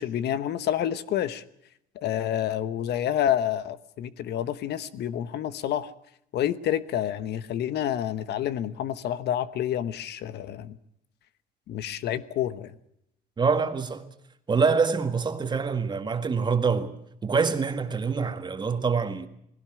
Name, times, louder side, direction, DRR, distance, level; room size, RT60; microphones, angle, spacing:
voice 1, 0.0-1.4 1.9-5.9 6.3-10.8 11.7-12.7, left 10 dB, 65° left, 1.1 m, -28 dB
voice 2, 13.4-14.1 14.5-16.9 17.2-19.3, right 5 dB, 25° right, 1.8 m, -25 dB
20.5 x 17.0 x 8.9 m
cardioid pair, 135°, 19 cm